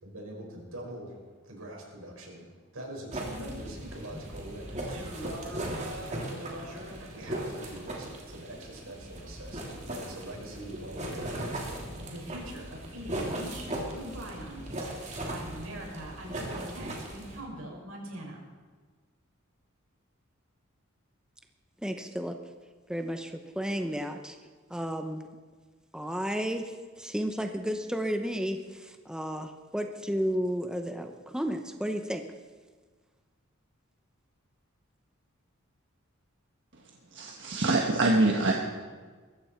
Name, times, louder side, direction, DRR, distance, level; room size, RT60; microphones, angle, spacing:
voice 1, 0.0-2.5 2.7-11.8 12.1-14.9 15.2-18.4, right 1 dB, 85° right, -1 dB, 5.6 m, -42 dB
sound 1, 3.1-17.4, right 1 dB, 35° right, 3.0 m, -38 dB
voice 2, 21.8-22.4 22.9-24.4 24.7-25.2 25.9-32.2, equal, 5° right, 5 dB, 0.8 m, -32 dB
voice 3, 37.1-38.5, right 2 dB, 60° right, 0 dB, 1.4 m, -24 dB
21.5 x 15.0 x 4.5 m, 1.5 s
head